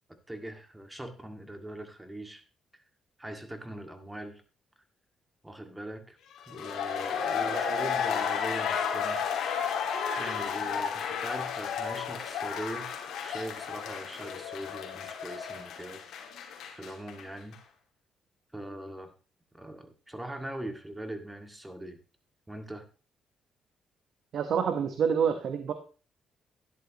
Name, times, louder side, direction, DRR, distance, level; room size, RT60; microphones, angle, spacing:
voice 1, 0.3-2.4 2.7-2.8 3.2-4.4 5.4-6.2 6.5-9.2 10.2-12.9 13.2-16.0 16.7-17.6 18.5-19.1 19.5-22.0 22.5-22.8, right 1 dB, 10° right, 6 dB, 2.1 m, -41 dB
sound 1, 6.4-17.2 17.5-17.6, left 7 dB, 80° left, 2.5 m, -33 dB
voice 2, 7.5-7.9 24.3-25.7, right 7 dB, 65° right, 7 dB, 1.2 m, -28 dB
12.5 x 10.5 x 3.0 m, 0.36 s
cardioid pair, 90°, 0 cm